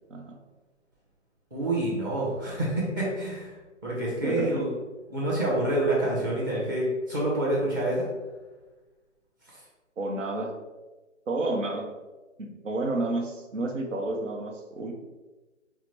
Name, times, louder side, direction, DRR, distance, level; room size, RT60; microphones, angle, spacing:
voice 1, 0.1-0.4 4.2-4.6 10.0-10.5 11.3-11.9 12.4-14.9, right 2 dB, 80° right, 3 dB, 0.8 m, -30 dB
voice 2, 1.5-3.5 3.8-4.7 5.1-8.1, right 1 dB, 15° right, -6 dB, 0.7 m, -27 dB
4.8 x 2.1 x 3.0 m, 1.2 s
figure-of-eight pair, 150°, 37 cm